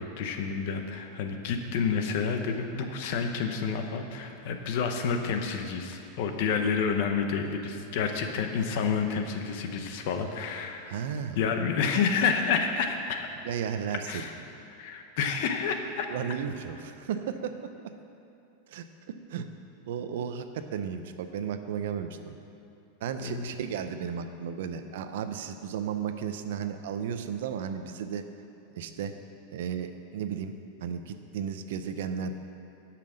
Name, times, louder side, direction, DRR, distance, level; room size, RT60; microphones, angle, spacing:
voice 1, 0.0-10.9 11.4-13.3 14.1-14.3 14.7-16.1 23.2-23.5, left 6 dB, 45° left, 5 dB, 0.9 m, -29 dB
voice 2, 10.9-11.4 13.4-14.2 16.1-17.5 18.7-18.8 19.3-19.5 19.9-22.4 23.0-28.2 28.8-29.1 29.5-30.5 30.8-32.4, right 7 dB, 65° right, 9 dB, 0.6 m, -34 dB
11.0 x 5.8 x 6.4 m, 2.8 s
supercardioid pair, 175°, 0 cm